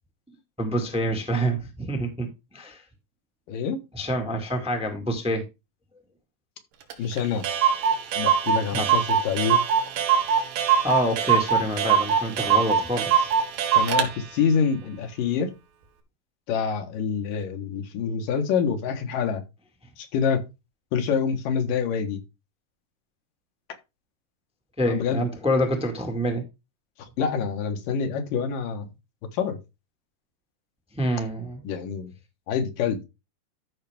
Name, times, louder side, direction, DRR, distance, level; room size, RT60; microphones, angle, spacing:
voice 1, 0.6-2.3 2.5-2.8 3.9-5.4 8.7-9.0 10.8-13.3 24.8-26.4 31.0-31.6, equal, 5° right, 0.9 m, -26 dB
voice 2, 3.5-3.8 7.0-7.5 8.2-9.6 13.8-15.5 16.5-19.4 20.0-20.4 20.9-22.2 24.9-25.3 27.2-28.9 29.3-29.6 31.6-32.1 32.5-33.0, left 6 dB, 80° left, 3.1 m, -26 dB
Clock, 6.9-7.0 7.2-7.3 7.4-14.1, right 7 dB, 85° right, 3.2 m, -22 dB
13.0 x 5.9 x 3.6 m
omnidirectional pair, 3.8 m